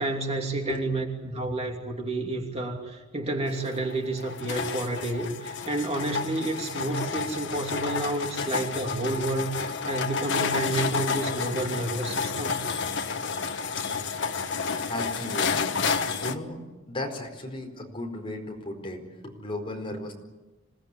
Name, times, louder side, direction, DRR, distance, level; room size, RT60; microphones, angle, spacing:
voice 1, 0.0-12.6, right 2 dB, 30° right, 2 dB, 2.8 m, -30 dB
sound 1, 3.5-16.3, left 5 dB, 60° left, 1.4 m, -30 dB
voice 2, 14.9-15.8 16.2-16.6 16.9-20.1, left 1 dB, 25° left, 2 dB, 4.6 m, -35 dB
27.0 x 18.5 x 9.9 m, 1.1 s
head